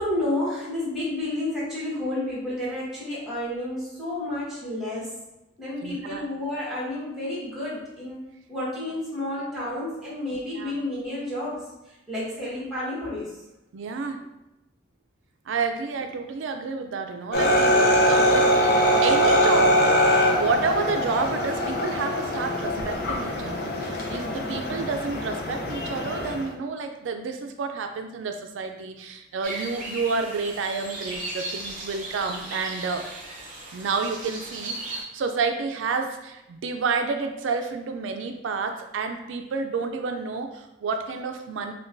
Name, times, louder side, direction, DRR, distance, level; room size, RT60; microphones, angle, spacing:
voice 1, 0.0-5.1 5.6-8.2 8.5-13.4, left 1 dB, ahead, -7 dB, 1.3 m, -30 dB
voice 2, 5.8-6.3 10.6-10.7 13.7-14.2 15.5-18.7 19.0-33.1 33.7-41.7, right 4 dB, 85° right, 5 dB, 0.3 m, -30 dB
sound 1, 17.3-26.5, equal, 50° left, 0.6 m, -22 dB
sound 2, 29.4-35.0, right 2 dB, 45° right, 0.8 m, -36 dB
5.1 x 2.2 x 2.5 m, 0.95 s
head